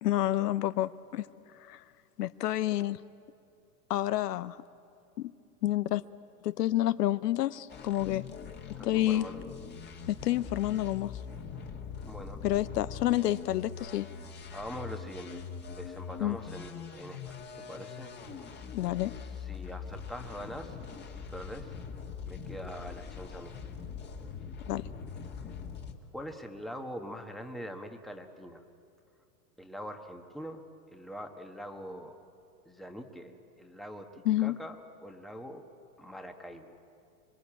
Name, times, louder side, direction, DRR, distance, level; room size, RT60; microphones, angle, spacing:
voice 1, 0.0-1.3 1.7-1.8 2.2-3.0 3.9-4.6 5.2-5.3 5.6-6.0 6.4-8.3 8.8-9.3 10.1-11.1 12.4-14.1 16.2-16.4 18.7-19.1 24.7-24.9 34.2-34.5, left 14 dB, 70° left, 15 dB, 0.8 m, -29 dB
sound 1, 7.7-25.9, left 6 dB, 20° left, 2.0 m, -43 dB
voice 2, 8.8-9.6 12.0-12.8 14.5-18.1 19.2-20.7 21.0-21.7 22.3-23.6 26.1-28.6 29.6-30.6 30.9-32.2 32.6-35.7 36.0-36.8, equal, ahead, 4 dB, 1.3 m, -43 dB
25.5 x 23.0 x 8.8 m, 2.5 s
hypercardioid pair, 130°, 49 cm